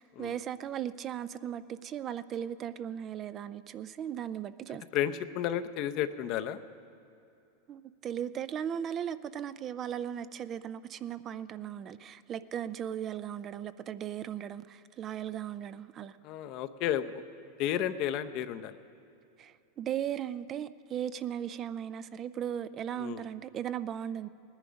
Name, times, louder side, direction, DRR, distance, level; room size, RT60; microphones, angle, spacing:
voice 1, 0.0-4.8 7.7-16.2 19.4-24.3, right 9 dB, 30° right, 0.4 m, -37 dB
voice 2, 4.7-6.6 16.2-17.2 17.6-18.8 23.0-23.2, left 10 dB, 50° left, 0.6 m, -32 dB
18.5 x 10.0 x 5.2 m
supercardioid pair, 130°, 0 cm